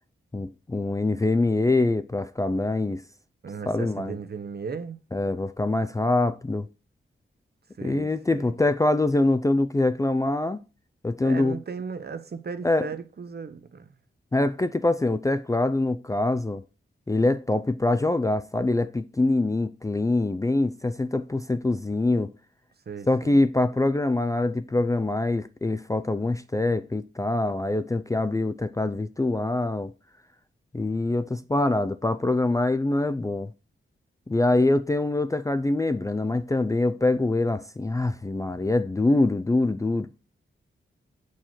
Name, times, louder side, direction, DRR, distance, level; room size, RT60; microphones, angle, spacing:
voice 1, 0.3-3.0 3.7-4.2 5.1-6.7 7.8-10.6 11.0-11.6 12.6-12.9 14.3-16.6 17.1-22.3 23.1-29.9 30.7-33.5 34.3-40.1, left 2 dB, 15° left, 0.4 m, -24 dB
voice 2, 3.4-5.0 7.8-8.5 11.2-13.9 22.9-23.4, right 5 dB, 50° right, 0.8 m, -36 dB
7.4 x 4.6 x 4.3 m
cardioid pair, 65°, 21 cm